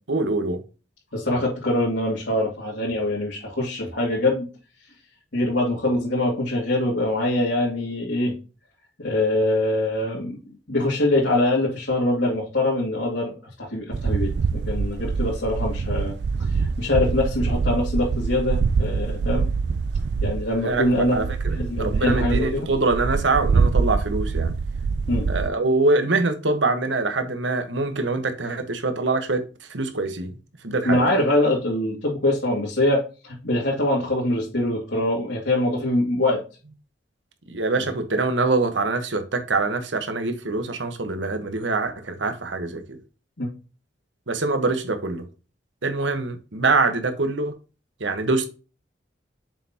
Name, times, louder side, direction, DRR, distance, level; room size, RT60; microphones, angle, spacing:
voice 1, 0.1-0.6 20.6-24.5 25.3-30.4 30.6-31.0 37.5-43.0 44.3-45.2 45.8-47.5 48.0-48.5, right 3 dB, 85° right, 1.3 m, -24 dB
voice 2, 1.1-4.5 5.3-8.4 9.0-16.2 16.5-19.5 20.2-21.2 21.5-22.7 25.1-25.3 30.8-36.4 37.8-37.9 43.4-43.5, left 1 dB, 80° left, 2.6 m, -23 dB
sound 1, 13.9-25.5, right 5 dB, 65° right, 0.4 m, -24 dB
7.0 x 5.6 x 2.9 m
head